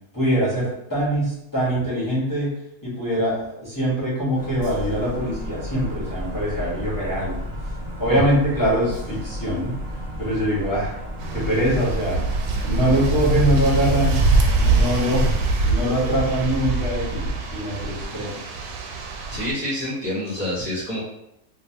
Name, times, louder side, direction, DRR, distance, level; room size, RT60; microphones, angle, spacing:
voice 1, 0.1-2.5 2.8-7.4 8.0-9.7 10.2-11.0 11.3-12.2 12.6-14.2 14.5-15.2 15.6-18.3, equal, 15° left, -10 dB, 1.2 m, -23 dB
sound 1, 4.4-15.5, equal, 55° right, 0.3 m, -33 dB
sound 2, 11.2-19.5, right 3 dB, 90° right, 1.1 m, -23 dB
voice 2, 19.3-21.0, left 1 dB, 25° right, -13 dB, 1.5 m, -27 dB
3.1 x 2.6 x 2.8 m, 0.81 s
omnidirectional pair, 1.6 m